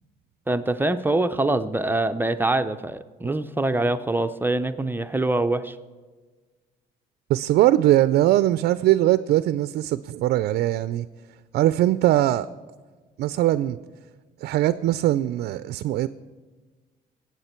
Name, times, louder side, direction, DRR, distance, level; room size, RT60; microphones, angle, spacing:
voice 1, 0.5-5.8, right 2 dB, 10° right, 9 dB, 0.5 m, -24 dB
voice 2, 7.3-11.1 11.5-12.5 13.2-13.8 14.4-16.1, right 14 dB, 70° right, 14 dB, 0.4 m, -21 dB
20.0 x 8.2 x 4.4 m, 1.4 s
cardioid pair, 110°, 17 cm